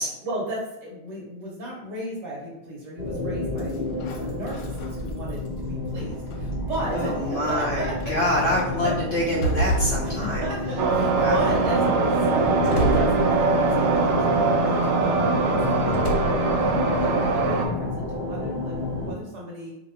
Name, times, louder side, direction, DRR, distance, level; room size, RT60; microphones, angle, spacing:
voice 1, 0.2-3.8 4.2-8.2 8.8-8.9 10.0-14.3 14.6-19.7, right 1 dB, 60° right, -4 dB, 1.3 m, -34 dB
sound 1, 3.0-19.1, left 2 dB, 25° right, 1.2 m, -30 dB
sound 2, 3.6-5.5 5.9-6.7 7.4-7.5 8.0-8.3 8.9-10.8 11.3-11.8 12.7-13.8 14.3-14.9 15.8-16.7, right 1 dB, 85° left, 1.5 m, -31 dB
voice 2, 6.8-10.5 11.1-11.5, left 1 dB, 65° left, -5 dB, 0.7 m, -26 dB
sound 3, 10.8-17.7, right 4 dB, 80° right, 1.4 m, -22 dB
3.0 x 2.9 x 4.3 m, 0.91 s
omnidirectional pair, 2.3 m